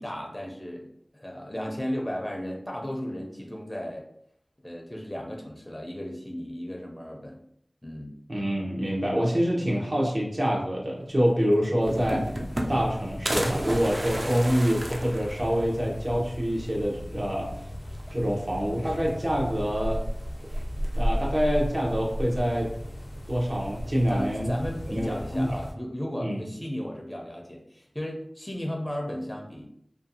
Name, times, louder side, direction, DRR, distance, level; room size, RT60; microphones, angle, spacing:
voice 1, 0.0-4.1 4.6-7.4 7.8-8.1 14.2-14.4 24.1-29.7, equal, 20° left, 0 dB, 0.4 m, -35 dB
voice 2, 8.3-12.3 12.7-17.5 18.1-20.0 20.9-22.7 23.3-24.6 24.9-25.5 26.2-26.5, equal, 60° right, -3 dB, 0.8 m, -26 dB
sound 1, 11.3-11.4 11.6-12.9 13.3-15.9 16.3-16.4 16.6-16.7 17.9-18.4 18.7-19.5 20.5-21.1, right 1 dB, 40° right, 0.4 m, -33 dB
sound 2, 11.8-25.7, equal, 70° left, 0.5 m, -35 dB
2.5 x 2.2 x 2.7 m, 0.70 s
wide cardioid pair, 45°, 0 cm